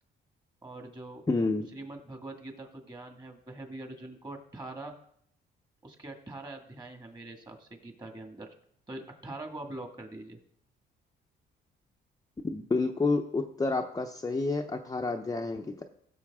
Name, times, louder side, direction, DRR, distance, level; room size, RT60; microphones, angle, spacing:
voice 1, 0.6-1.3 1.7-4.9 5.8-8.5 8.9-10.4, right 2 dB, 20° right, 4 dB, 2.0 m, -43 dB
voice 2, 1.3-1.7 12.4-15.8, left 3 dB, 20° left, 3 dB, 0.7 m, -29 dB
16.0 x 6.9 x 3.6 m, 0.68 s
cardioid pair, 90°, 20 cm